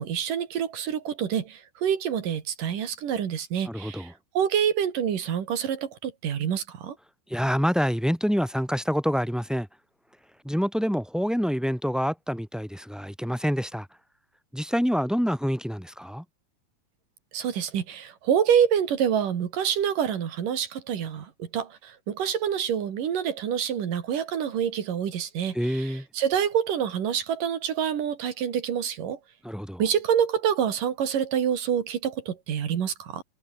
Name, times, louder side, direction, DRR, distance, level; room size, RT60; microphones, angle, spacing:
voice 1, 0.0-7.0 17.3-29.2 29.8-33.2, right 8 dB, 80° right, 4.0 m, -27 dB
voice 2, 3.7-4.1 7.3-9.7 10.4-13.9 14.5-16.2 25.5-26.0 29.4-29.8, equal, ahead, 6.4 m, -27 dB
omnidirectional pair, 3.8 m